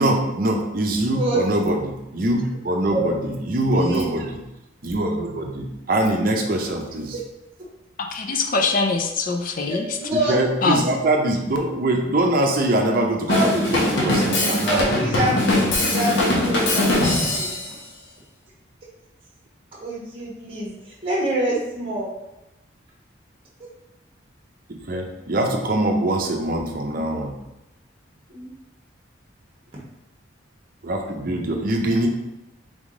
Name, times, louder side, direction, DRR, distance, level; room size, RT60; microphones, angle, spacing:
voice 1, 0.0-4.4 4.8-7.2 10.1-14.8 24.9-27.3 30.8-32.1, right 1 dB, 45° right, 2 dB, 0.6 m, -23 dB
voice 2, 3.7-4.1 9.7-10.8 13.3-13.8 14.6-17.5 19.8-22.1 28.3-28.5, right 1 dB, 30° right, -5 dB, 1.0 m, -26 dB
voice 3, 8.0-9.9 10.6-10.9, left 3 dB, 45° left, 4 dB, 0.4 m, -23 dB
Drum kit / Drum, 13.3-17.7, left 1 dB, 65° left, 0.8 m, -21 dB
3.6 x 3.5 x 3.7 m, 0.92 s
head